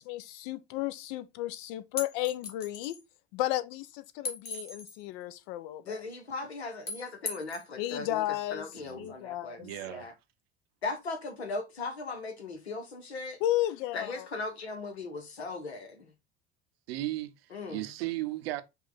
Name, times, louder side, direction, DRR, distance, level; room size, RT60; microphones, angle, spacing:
voice 1, 0.0-3.0 3.3-6.0 7.8-8.7 9.0-9.7 13.4-14.3, left 14 dB, 60° left, 0.6 m, -33 dB
sound 1, 2.0-3.0 4.2-5.0 6.9-7.7, left 4 dB, 30° left, 1.7 m, -38 dB
voice 2, 5.8-9.6 9.9-10.1 10.8-13.4 13.9-16.1 17.5-17.9, left 3 dB, 85° left, 1.0 m, -38 dB
voice 3, 8.7-9.2 9.6-10.1 16.9-17.4 17.7-18.6, right 16 dB, 70° right, 0.6 m, -35 dB
5.4 x 2.3 x 3.9 m
figure-of-eight pair, 65°, 32 cm